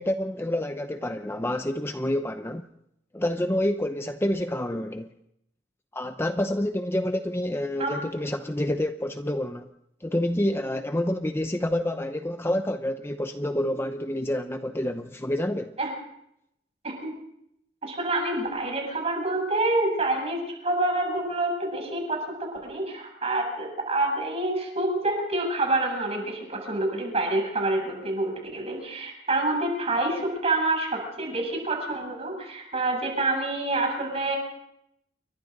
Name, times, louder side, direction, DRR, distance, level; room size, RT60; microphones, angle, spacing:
voice 1, 0.0-2.7 3.1-5.1 5.9-9.7 10.0-15.8, left 1 dB, 15° left, 0.7 m, -28 dB
voice 2, 17.8-34.4, right 2 dB, 35° right, 7.7 m, -27 dB
29.0 x 23.5 x 4.0 m
head